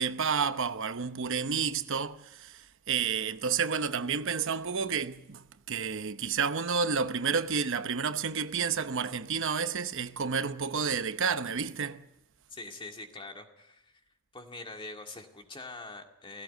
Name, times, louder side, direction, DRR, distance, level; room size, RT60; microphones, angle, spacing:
voice 1, 0.0-12.1, right 6 dB, 60° right, 0.9 m, -30 dB
voice 2, 12.5-14.0 14.3-16.4, left 2 dB, 25° left, 2.1 m, -44 dB
17.0 x 17.0 x 9.2 m
head